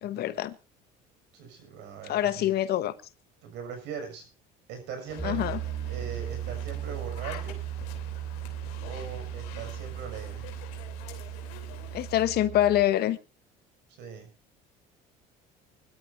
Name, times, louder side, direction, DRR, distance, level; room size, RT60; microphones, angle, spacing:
voice 1, 0.0-0.6 2.1-2.9 5.2-5.6 11.9-13.2, left 13 dB, 60° left, 1.2 m, -25 dB
voice 2, 1.3-2.5 3.4-4.3 4.7-5.5 5.9-7.6 8.9-10.4 13.9-14.3, right 6 dB, 70° right, 6.3 m, -40 dB
sound 1, 5.1-12.2, left 11 dB, 90° left, 3.0 m, -46 dB
Piano, 5.2-12.9, right 12 dB, 10° right, 2.4 m, -37 dB
24.5 x 12.5 x 2.7 m
supercardioid pair, 95°, 18 cm